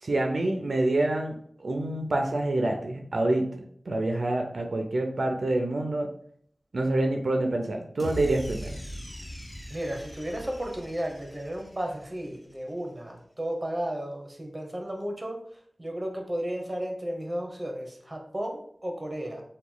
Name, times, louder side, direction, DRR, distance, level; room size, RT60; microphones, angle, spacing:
voice 1, 0.0-3.5 3.9-6.1 6.7-8.8, right 2 dB, 75° right, 2 dB, 0.4 m, -27 dB
sound 1, 8.0-12.3, equal, 15° left, 0.7 m, -40 dB
voice 2, 9.7-15.4 15.8-19.4, right 1 dB, 20° right, 2 dB, 0.8 m, -33 dB
2.9 x 2.2 x 3.7 m, 0.62 s
wide cardioid pair, 65°, 0 cm